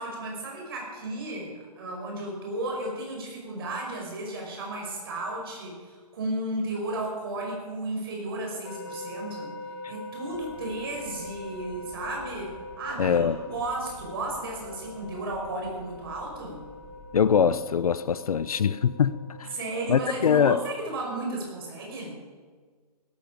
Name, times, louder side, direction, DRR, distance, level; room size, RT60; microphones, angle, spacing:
voice 1, 0.0-9.5 9.9-16.6 19.5-22.2, right 2 dB, 35° right, 5.0 m, -34 dB
sound 1, 8.6-20.1, left 2 dB, 40° left, 3.3 m, -43 dB
Wind, 10.3-17.6, left 2 dB, 5° left, 1.2 m, -50 dB
voice 2, 13.0-13.4 17.1-19.5 19.9-20.6, left 7 dB, 65° left, 0.6 m, -23 dB
16.5 x 13.5 x 5.2 m
hypercardioid pair, 175°, 20 cm